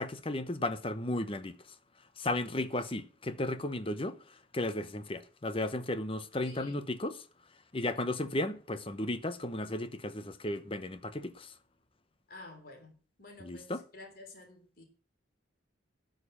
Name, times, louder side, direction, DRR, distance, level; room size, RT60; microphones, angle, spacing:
voice 1, 0.0-1.6 2.2-4.2 4.5-7.2 7.7-11.5 13.4-13.8, left 1 dB, 30° left, 0.9 m, -34 dB
voice 2, 6.4-6.8 12.3-14.8, left 2 dB, 50° left, 3.4 m, -51 dB
12.0 x 6.7 x 7.3 m
head